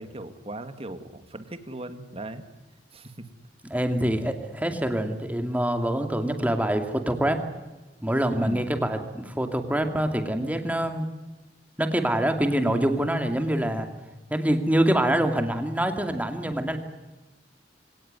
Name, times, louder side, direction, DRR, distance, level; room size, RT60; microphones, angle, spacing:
voice 1, 0.0-2.4 2.9-3.3 8.4-8.7, right 1 dB, 35° right, 9 dB, 2.1 m, -38 dB
voice 2, 3.7-7.4 8.0-11.1 11.8-13.9 14.3-16.8, right 1 dB, 10° right, 6 dB, 2.4 m, -25 dB
24.5 x 18.0 x 9.6 m, 1.2 s
head